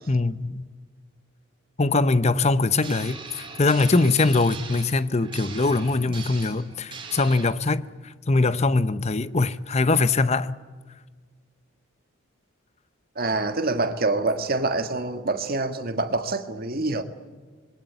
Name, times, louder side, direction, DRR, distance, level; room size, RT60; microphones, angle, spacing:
voice 1, 0.1-0.7 1.8-10.6, left 3 dB, 30° left, 0.7 m, -22 dB
sound 1, 2.8-7.5, right 5 dB, 25° right, 4.5 m, -40 dB
voice 2, 13.2-17.0, right 2 dB, 45° right, 1.7 m, -26 dB
26.0 x 21.5 x 9.5 m
head